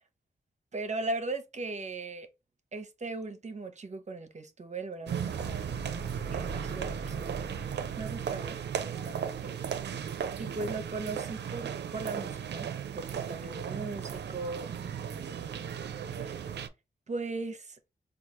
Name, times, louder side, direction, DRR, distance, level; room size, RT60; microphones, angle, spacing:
voice 1, 0.7-2.3 2.7-5.8 6.0-9.5 10.4-12.7 12.9-15.6 16.2-16.5 17.1-17.8, right 3 dB, 45° right, 0.7 m, -39 dB
sound 1, 5.1-9.0, right 2 dB, 10° right, 1.0 m, -43 dB
sound 2, 5.1-16.7, right 8 dB, 90° right, 0.4 m, -36 dB
4.6 x 2.4 x 2.8 m
cardioid pair, 75°, 17 cm